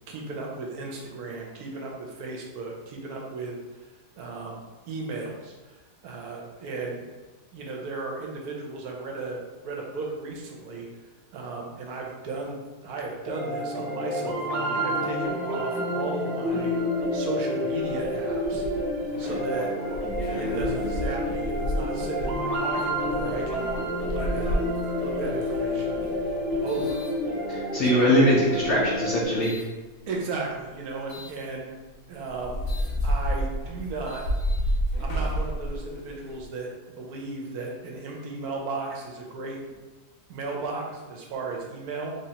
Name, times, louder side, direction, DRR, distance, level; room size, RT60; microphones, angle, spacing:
voice 1, 0.1-3.6 4.2-7.0 7.5-10.9 11.3-16.7 17.1-18.7 19.2-19.7 20.3-24.6 25.0-26.0 26.6-27.1 27.8-28.2 30.1-31.8 32.1-32.7 33.0-34.2 35.0-39.6 40.3-42.2, right 3 dB, 70° right, -1 dB, 1.1 m, -35 dB
sound 1, 13.3-29.3, equal, 55° right, 0.7 m, -29 dB
sound 2, 17.8-27.8 28.5-29.7 31.1-31.4 31.9-32.0 32.3-36.4, equal, 80° left, 1.2 m, -32 dB
voice 2, 27.5-29.6, equal, 65° left, -5 dB, 0.7 m, -22 dB
3.4 x 3.0 x 2.8 m, 1.2 s
omnidirectional pair, 1.7 m